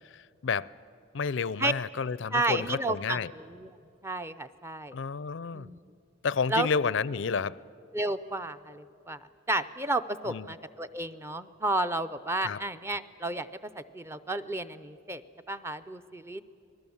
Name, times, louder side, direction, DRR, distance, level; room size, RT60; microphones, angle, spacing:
voice 1, 0.1-0.7 1.1-3.3 4.9-5.7 6.2-7.6 10.3-10.5 12.4-12.6, left 5 dB, 60° left, 20 dB, 0.4 m, -30 dB
voice 2, 2.3-3.7 4.0-5.0 5.5-5.8 6.5-6.7 7.9-9.2 9.5-13.5 13.7-15.2 15.5-16.4, right 2 dB, 10° right, 11 dB, 0.5 m, -32 dB
27.0 x 20.0 x 7.1 m, 2.6 s
head